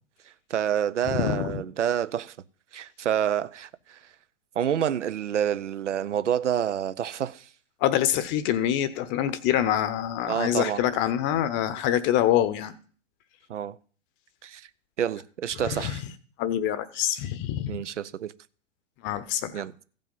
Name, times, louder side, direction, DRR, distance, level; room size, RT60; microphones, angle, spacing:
voice 1, 0.5-2.3 2.7-4.0 4.6-7.5 10.3-10.8 13.5-13.8 14.4-14.7 15.0-16.0 17.7-18.3 19.5-19.7, right 9 dB, 70° right, 0.7 m, -28 dB
voice 2, 1.0-1.6 7.8-12.7 15.6-15.9 16.4-17.8 19.0-19.6, left 11 dB, 30° left, 0.9 m, -25 dB
15.5 x 5.4 x 5.5 m
figure-of-eight pair, 100°, 37 cm